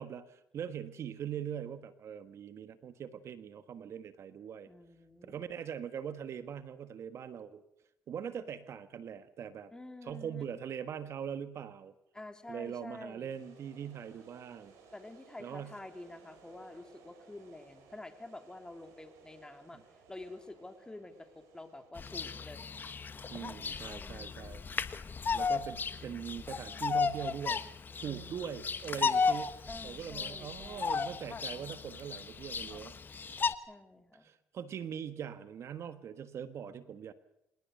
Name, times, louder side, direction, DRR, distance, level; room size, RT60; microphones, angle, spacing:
voice 1, 0.0-4.7 5.2-7.6 8.1-9.7 10.0-11.9 12.5-14.7 15.4-15.8 19.7-19.8 23.3-24.6 25.3-27.6 28.0-32.9 34.2-37.1, right 8 dB, 60° right, 12 dB, 1.4 m, -42 dB
voice 2, 4.7-5.6 9.7-10.6 12.1-13.3 14.9-19.8 20.1-22.6 24.0-24.7 28.0-28.6 29.7-31.1 33.7-34.3, left 2 dB, 15° left, 7 dB, 3.2 m, -49 dB
sound 1, 13.3-21.9, right 5 dB, 90° right, 6.3 m, -60 dB
Bird vocalization bird call bird song, 22.0-33.5, left 5 dB, 40° left, 1.3 m, -35 dB
26.5 x 19.5 x 6.7 m, 0.80 s
cardioid pair, 85°, 5 cm